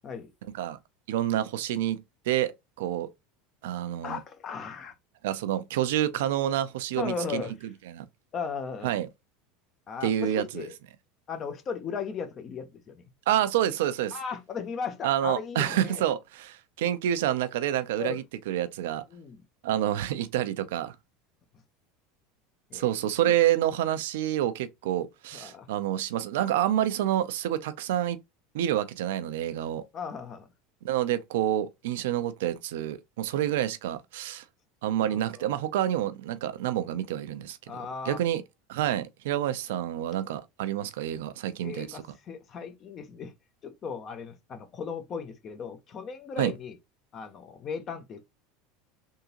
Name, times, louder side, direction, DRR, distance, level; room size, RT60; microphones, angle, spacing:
voice 1, 1.1-2.5 2.8-3.1 3.6-4.2 5.2-8.0 8.8-9.1 10.0-10.7 13.3-14.2 15.0-19.0 19.6-21.0 22.7-28.2 28.5-29.8 30.8-34.4 34.8-37.6 38.1-38.4 38.7-42.0 46.4-46.5, right 12 dB, 75° right, 0.5 m, -28 dB
voice 2, 4.0-4.9 7.0-7.5 8.3-8.9 9.9-10.7 11.3-13.0 14.1-16.0 18.0-18.2 19.1-19.4 22.7-22.9 25.3-25.7 29.9-30.5 35.0-35.5 37.7-38.2 41.6-43.3 43.6-46.8 47.1-48.2, left 6 dB, 40° left, 0.8 m, -36 dB
3.6 x 2.7 x 2.9 m
hypercardioid pair, 90°, 0 cm